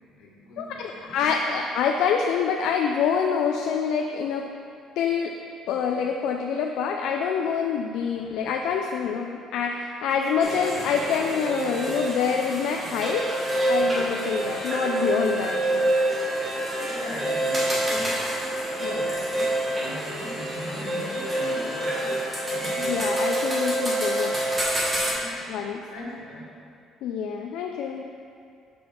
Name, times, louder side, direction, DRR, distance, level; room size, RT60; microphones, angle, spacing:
voice 1, 0.0-1.4 8.1-8.4 16.4-22.8 25.0-25.5 25.9-26.5, left 1 dB, 85° left, -4 dB, 1.5 m, -40 dB
voice 2, 0.6-4.5 5.0-5.3 5.7-13.3 13.7-15.9 18.8-19.0 22.8-24.3 25.5-25.8 27.0-28.0, left 6 dB, 65° left, 2 dB, 0.4 m, -26 dB
sound 1, 10.4-25.1, right 1 dB, 15° right, 1.2 m, -27 dB
6.0 x 4.7 x 5.4 m, 2.4 s
cardioid pair, 175°, 0 cm